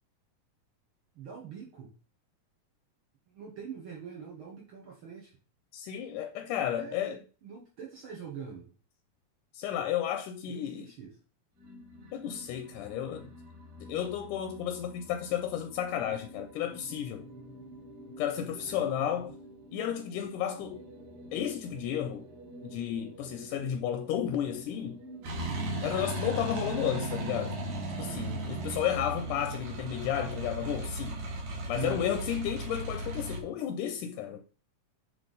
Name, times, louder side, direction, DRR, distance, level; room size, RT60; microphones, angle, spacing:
voice 1, 1.1-1.9 3.3-5.3 6.7-8.7 10.5-11.2 18.5-19.3 28.0-28.5 31.6-32.1, right 7 dB, 80° right, 1.1 m, -44 dB
voice 2, 5.7-7.2 9.5-10.9 12.1-13.3 13.8-17.3 18.2-19.4 19.7-20.8 21.3-22.3 22.6-25.0 25.8-27.6 28.0-31.2 31.7-34.4, left 10 dB, 80° left, 1.9 m, -32 dB
sound 1, 11.5-30.1, equal, 50° right, 2.1 m, -50 dB
sound 2, 25.2-33.4, right 1 dB, 65° right, 3.1 m, -36 dB
9.2 x 3.2 x 3.9 m
omnidirectional pair, 3.9 m